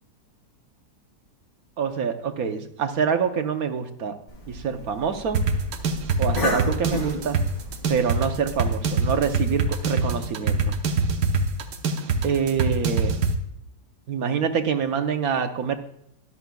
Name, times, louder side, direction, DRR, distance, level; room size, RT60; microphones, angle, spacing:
voice 1, 1.8-4.2 4.5-5.4 6.2-7.4 7.9-10.8 12.2-13.2 14.1-15.8, right 6 dB, 65° right, 7 dB, 1.2 m, -26 dB
Cough, 4.3-9.7, left 2 dB, 45° left, 2.4 m, -34 dB
sound 1, 5.3-13.3, right 4 dB, 90° right, 1.6 m, -24 dB
14.0 x 11.0 x 2.3 m, 0.75 s
omnidirectional pair, 1.8 m